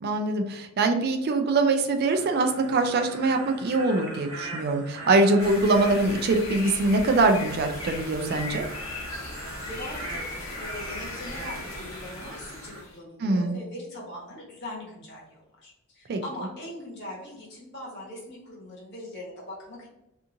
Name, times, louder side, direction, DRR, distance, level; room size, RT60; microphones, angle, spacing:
voice 1, 0.0-8.6 13.2-13.6 16.1-16.2, right 2 dB, 50° right, 5 dB, 0.3 m, -23 dB
sound 1, 2.1-12.8, right 1 dB, 90° right, 0.7 m, -41 dB
sound 2, 5.4-12.9, left 2 dB, 80° left, 1.0 m, -38 dB
voice 2, 9.4-19.9, left 1 dB, 55° left, -4 dB, 1.2 m, -41 dB
2.7 x 2.4 x 2.5 m, 0.89 s
head